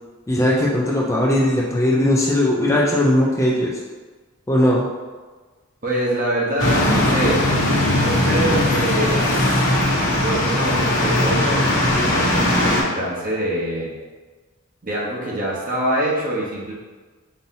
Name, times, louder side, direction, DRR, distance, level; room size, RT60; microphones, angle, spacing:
voice 1, 0.3-3.8 4.5-4.9, left 1 dB, 15° left, -4 dB, 0.4 m, -18 dB
voice 2, 5.8-9.2 9.8-13.9 14.8-16.7, right 1 dB, 45° right, -5 dB, 1.0 m, -25 dB
sound 1, 6.6-12.8, left 1 dB, 70° left, 1.0 m, -19 dB
5.4 x 2.8 x 2.7 m, 1.4 s
head